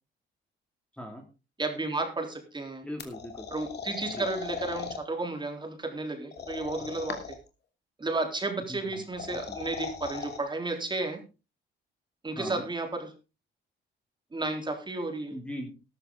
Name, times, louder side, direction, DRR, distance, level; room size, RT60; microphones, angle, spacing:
voice 1, 0.9-1.3 2.8-3.5 4.1-4.3 8.7-9.6 12.3-12.6 15.3-15.7, equal, 5° left, 3 dB, 2.6 m, -40 dB
voice 2, 1.6-2.9 3.5-7.2 8.0-11.2 12.2-13.1 14.3-15.3, right 2 dB, 25° right, 4 dB, 3.7 m, -32 dB
sound 1, 3.0-5.0 6.3-7.5 8.9-10.4, left 6 dB, 60° left, 3.0 m, -38 dB
13.0 x 12.5 x 3.9 m, 0.31 s
cardioid pair, 90°, 20 cm